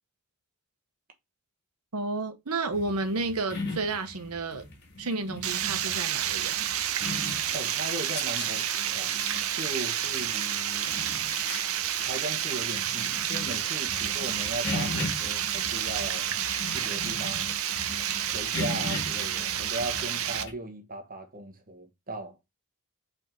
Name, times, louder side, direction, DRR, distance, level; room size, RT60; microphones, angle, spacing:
voice 1, 1.9-4.7 5.0-6.7, right 3 dB, 85° right, 1.0 m, -31 dB
sound 1, 2.7-20.5, left 2 dB, 50° left, 1.7 m, -39 dB
Water, 5.4-20.4, right 10 dB, 70° right, 0.7 m, -30 dB
voice 2, 7.5-9.2 9.6-10.9 12.1-16.3 16.7-17.5 18.3-22.4, right 1 dB, 40° right, 1.1 m, -38 dB
5.2 x 3.6 x 5.2 m
head